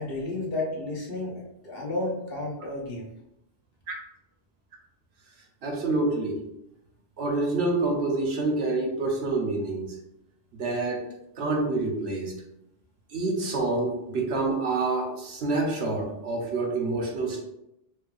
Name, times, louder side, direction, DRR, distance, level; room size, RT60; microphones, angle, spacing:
voice 1, 0.0-3.1, left 2 dB, 65° left, -3 dB, 1.2 m, -32 dB
voice 2, 5.6-6.4 7.2-10.0 10.6-11.1 11.4-12.4 13.1-17.4, right 2 dB, 75° right, 1 dB, 1.1 m, -27 dB
4.5 x 3.2 x 2.4 m, 0.84 s
omnidirectional pair, 1.1 m